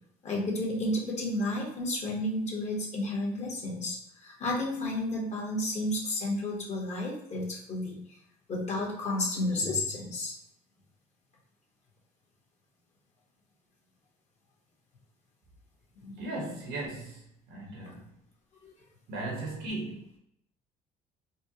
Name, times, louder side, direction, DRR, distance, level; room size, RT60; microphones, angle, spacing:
voice 1, 0.2-8.0 8.5-10.3 16.0-16.1 18.6-18.7, left 1 dB, 40° left, -2 dB, 1.3 m, -32 dB
voice 2, 16.2-18.1 19.1-20.2, right 2 dB, 80° right, -1 dB, 1.3 m, -37 dB
4.2 x 2.3 x 2.9 m, 0.78 s
cardioid pair, 110°, 17 cm